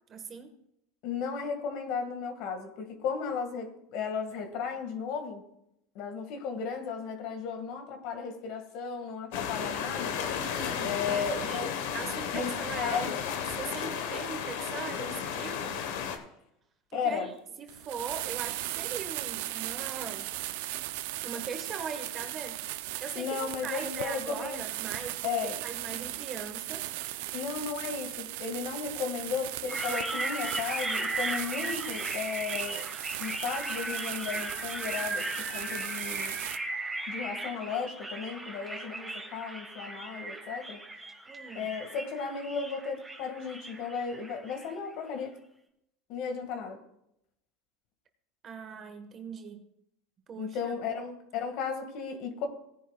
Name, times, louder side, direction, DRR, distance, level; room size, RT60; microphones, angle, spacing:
voice 1, 0.1-0.5 10.4-13.1 13.5-15.8 16.9-17.3 17.6-20.3 21.2-22.6 23.0-26.9 41.3-41.7 48.4-49.6 50.3-50.7, right 5 dB, 35° right, 6 dB, 1.5 m, -40 dB
voice 2, 1.0-5.4 5.9-10.2 10.8-11.7 12.3-13.2 16.9-17.3 23.2-24.6 25.2-25.6 27.3-32.8 33.2-36.3 37.1-40.8 41.5-45.4 46.1-46.8 50.4-52.5, left 6 dB, 60° left, 5 dB, 2.0 m, -35 dB
sound 1, 9.3-16.2, left 7 dB, 80° left, 1.3 m, -33 dB
sound 2, 17.7-36.6, right 16 dB, 75° right, 0.5 m, -37 dB
sound 3, 29.7-44.7, right 2 dB, 5° right, 1.7 m, -37 dB
17.0 x 10.0 x 2.4 m, 0.78 s
supercardioid pair, 120°, 0 cm